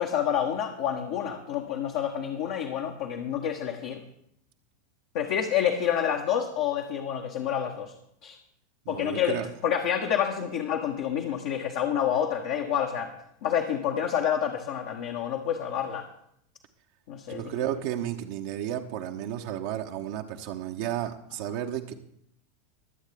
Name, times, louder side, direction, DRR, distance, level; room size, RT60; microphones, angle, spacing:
voice 1, 0.0-4.0 5.1-7.9 8.2-8.4 8.9-13.1 13.4-16.1 17.1-17.4, left 9 dB, 55° left, 1 dB, 1.2 m, -28 dB
voice 2, 8.9-9.5 17.3-21.9, right 11 dB, 50° right, 4 dB, 1.0 m, -33 dB
22.0 x 8.2 x 3.5 m, 0.73 s
figure-of-eight pair, 85°, 0 cm